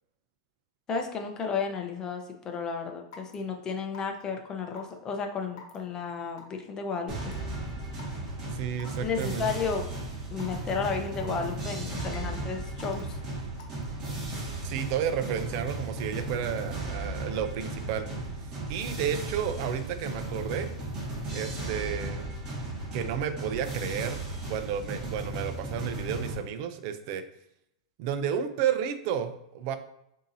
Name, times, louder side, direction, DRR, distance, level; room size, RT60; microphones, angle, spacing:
voice 1, 0.9-7.3 9.0-9.9 10.3-13.2, left 5 dB, 25° left, 4 dB, 0.7 m, -33 dB
Raindrop / Water tap faucet / Drip, 3.1-3.3 3.9-4.2 4.8-4.9 5.6-5.8 6.4-6.6 7.2-7.4 8.0-8.1 8.8-9.0 9.6-9.7 10.4-10.5 11.2-11.5 12.0-12.3 12.8-13.0 13.6-13.8, left 6 dB, 60° left, 1.0 m, -47 dB
sound 1, 7.1-26.4, right 2 dB, 25° right, 1.8 m, -35 dB
voice 2, 8.5-9.5 14.6-18.1 18.7-20.7 21.3-22.3 22.9-24.2 24.5-27.2 28.0-29.8, right 8 dB, 50° right, 9 dB, 0.5 m, -32 dB
6.9 x 2.8 x 2.7 m, 0.79 s
supercardioid pair, 130°, 3 cm